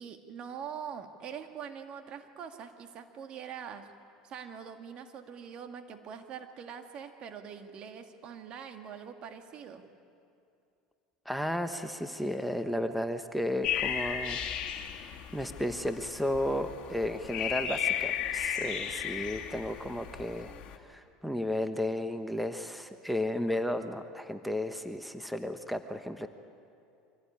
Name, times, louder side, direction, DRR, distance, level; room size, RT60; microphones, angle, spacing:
voice 1, 0.0-3.9 4.2-9.8, right 7 dB, 50° right, 6 dB, 2.0 m, -43 dB
voice 2, 11.2-14.4 14.9-15.1 15.3-26.3, left 1 dB, ahead, 8 dB, 1.2 m, -33 dB
sound 1, 13.6-20.8, left 8 dB, 50° left, 2.2 m, -35 dB
24.5 x 17.0 x 9.9 m, 2.5 s
hypercardioid pair, 80°, 2 cm